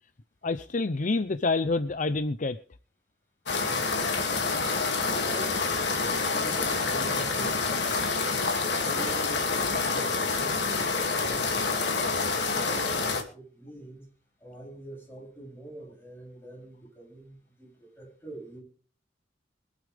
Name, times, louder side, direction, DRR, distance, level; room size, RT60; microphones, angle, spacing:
voice 1, 0.4-2.6, left 3 dB, 45° left, 11 dB, 0.7 m, -27 dB
sound 1, 3.5-13.2, left 4 dB, 85° left, 2.6 m, -27 dB
voice 2, 5.0-5.6 6.3-8.2 8.8-11.9 12.6-14.1 14.4-18.6, right 2 dB, 15° left, -2 dB, 7.6 m, -44 dB
25.0 x 8.5 x 3.5 m, 0.42 s
head